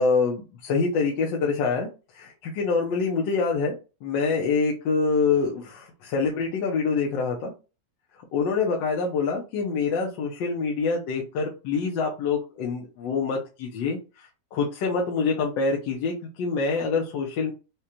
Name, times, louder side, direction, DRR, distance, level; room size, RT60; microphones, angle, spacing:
voice 1, 0.0-3.7 4.0-7.5 8.3-17.5, left 4 dB, 90° left, 0 dB, 1.4 m, -26 dB
5.1 x 2.2 x 2.9 m, 0.31 s
omnidirectional pair, 1.9 m